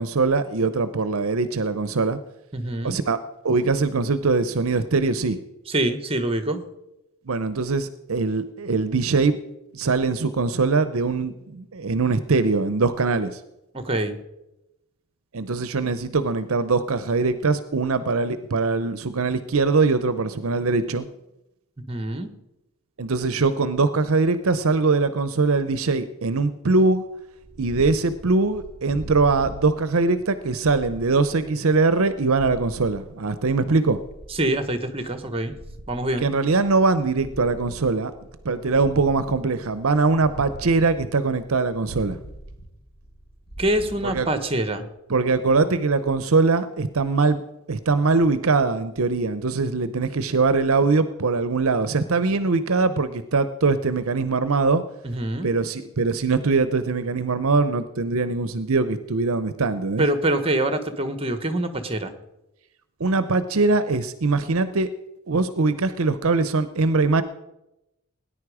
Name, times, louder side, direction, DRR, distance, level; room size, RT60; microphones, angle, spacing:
voice 1, 0.0-2.2 2.8-3.2 3.4-5.4 7.3-9.4 9.7-13.4 15.3-21.1 23.0-27.1 27.6-34.0 36.2-38.1 38.4-42.2 44.0-44.3 45.1-47.4 47.7-54.8 55.4-60.1 63.0-64.9 65.3-67.2, right 3 dB, 65° right, 13 dB, 0.7 m, -22 dB
voice 2, 2.5-3.0 5.7-6.6 13.7-14.2 21.9-22.3 34.3-35.5 35.9-36.3 43.6-44.9 55.0-55.5 60.0-62.1, right 1 dB, 25° right, 10 dB, 1.3 m, -25 dB
Purr, 27.2-44.9, right 1 dB, 45° left, 5.1 m, -42 dB
18.5 x 10.0 x 4.9 m, 0.92 s
head